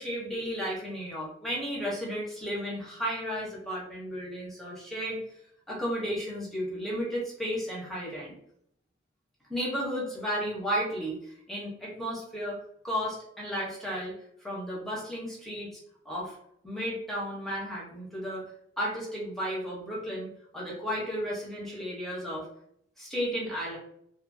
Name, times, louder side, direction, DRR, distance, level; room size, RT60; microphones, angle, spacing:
voice 1, 0.0-5.2 5.7-8.3 9.5-12.6 12.8-14.1 14.4-15.7 16.0-16.4 16.6-18.4 18.8-20.3 20.5-22.5 23.0-23.8, equal, ahead, -6 dB, 0.8 m, -33 dB
2.7 x 2.5 x 2.6 m, 0.71 s
head